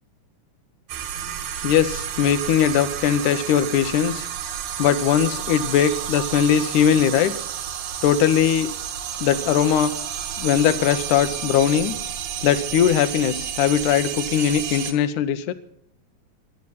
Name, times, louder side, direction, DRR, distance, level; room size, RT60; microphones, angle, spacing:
sound 1, 0.9-14.9, right 9 dB, 70° right, 2.4 m, -31 dB
voice 1, 1.6-4.3 4.8-7.3 8.0-8.7 9.2-9.9 10.4-12.0 12.4-15.5, left 9 dB, 75° left, 10 dB, 2.1 m, -20 dB
18.5 x 11.0 x 5.6 m, 0.75 s
omnidirectional pair, 4.0 m